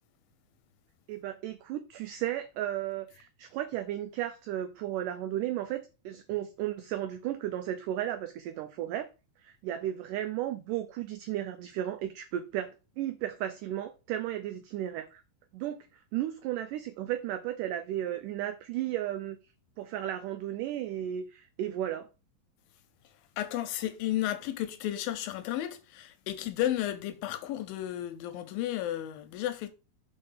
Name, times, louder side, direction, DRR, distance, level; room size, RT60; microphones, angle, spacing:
voice 1, 1.1-9.1 9.4-12.7 13.0-15.2 15.5-19.4 19.8-22.1, right 12 dB, 85° right, 1.8 m, -34 dB
voice 2, 23.4-29.7, left 13 dB, 80° left, 2.3 m, -33 dB
5.3 x 4.4 x 5.5 m
omnidirectional pair, 4.4 m